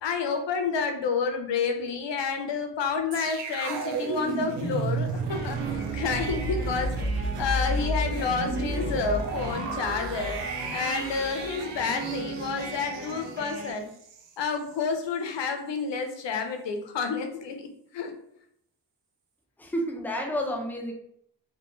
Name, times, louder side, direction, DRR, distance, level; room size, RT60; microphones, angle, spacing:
voice 1, 0.0-6.9 7.4-10.4 10.7-13.9 14.4-17.7 17.9-18.1, left 5 dB, 80° left, 5 dB, 0.5 m, -29 dB
sound 1, 3.1-14.3 14.6-14.8, right 2 dB, 90° right, 0.5 m, -32 dB
sound 2, 5.3-13.7, right 3 dB, 20° right, 1.3 m, -38 dB
voice 2, 19.6-20.9, equal, 5° left, 2 dB, 0.5 m, -30 dB
2.5 x 2.2 x 2.9 m, 0.70 s
cardioid pair, 50°, 43 cm